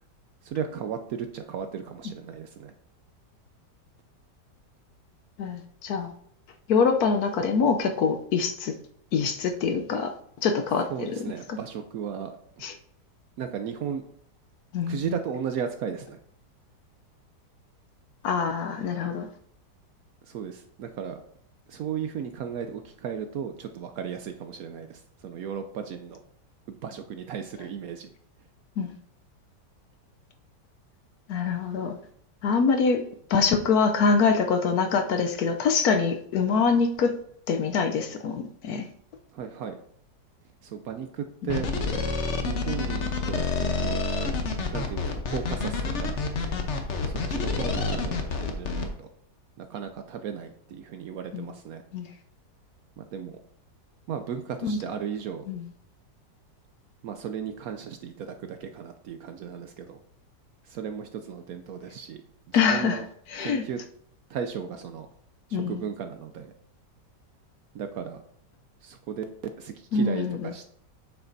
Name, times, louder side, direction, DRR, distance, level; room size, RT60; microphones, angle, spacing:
voice 1, 0.4-2.7 10.9-12.6 13.4-14.0 14.9-16.2 20.3-21.2 21.7-26.2 26.7-28.1 39.3-39.8 40.6-41.7 42.4-44.0 44.7-46.1 47.1-49.1 49.6-51.8 53.0-53.4 54.1-55.5 57.0-60.0 60.6-62.2 62.5-63.1 63.4-63.8 64.3-65.1 65.5-66.5 67.7-68.2 68.8-69.3 69.6-70.7, right 7 dB, 70° right, 7 dB, 0.9 m, -35 dB
voice 2, 5.4-6.1 6.7-8.7 9.1-10.1 10.4-11.1 11.5-11.6 12.6-12.7 14.7-15.0 18.2-19.3 28.8-28.9 31.3-31.9 32.4-33.0 33.3-37.2 37.5-38.9 41.4-41.5 51.3-51.5 51.9-52.1 54.6-54.8 55.5-55.7 62.5-63.0 63.3-63.6 65.5-65.8 69.9-70.5, left 5 dB, 70° left, 6 dB, 1.0 m, -24 dB
sound 1, 41.5-48.9, left 3 dB, 50° left, 1.0 m, -28 dB
8.2 x 6.8 x 2.6 m, 0.65 s
omnidirectional pair, 1.9 m